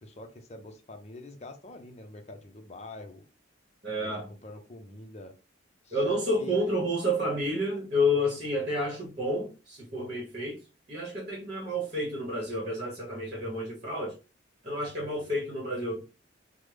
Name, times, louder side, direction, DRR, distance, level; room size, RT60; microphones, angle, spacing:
voice 1, 0.0-3.2 4.0-5.3 5.8-6.8 14.9-15.3, left 2 dB, 35° left, 0.6 m, -46 dB
voice 2, 3.8-4.3 5.9-10.6 10.9-14.1 14.6-16.0, left 1 dB, 35° right, 1.1 m, -30 dB
3.3 x 2.1 x 3.3 m
head